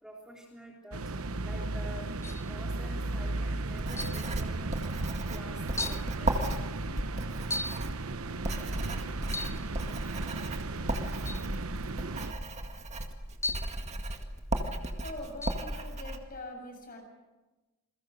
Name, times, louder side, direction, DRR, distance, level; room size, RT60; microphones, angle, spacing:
voice 1, 0.0-1.0 1.4-2.0 2.5-4.7 5.3-6.5, equal, 5° right, -2 dB, 3.7 m, -47 dB
sound 1, 0.9-12.3, right 3 dB, 80° right, 1.0 m, -35 dB
sound 2, 2.2-2.5 4.0-4.3 5.1-5.2 5.8-6.1 7.5-7.9 9.3-9.7 11.3-11.5 13.4-13.8 15.4-15.7, left 2 dB, 15° left, 0.7 m, -36 dB
Writing, 3.7-16.2, right 1 dB, 35° right, 2.1 m, -35 dB
voice 2, 15.0-17.0, left 1 dB, 45° left, 3 dB, 7.3 m, -43 dB
28.5 x 22.0 x 6.5 m, 1.2 s
head